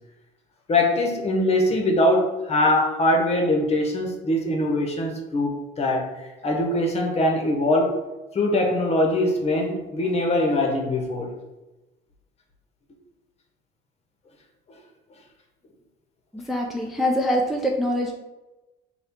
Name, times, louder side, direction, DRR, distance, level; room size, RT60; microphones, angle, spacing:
voice 1, 0.7-7.9 8.3-11.3, left 1 dB, 40° left, 2 dB, 0.8 m, -22 dB
voice 2, 16.3-18.1, equal, ahead, -1 dB, 0.4 m, -24 dB
4.3 x 2.3 x 3.5 m, 1.1 s
cardioid pair, 110°, 17 cm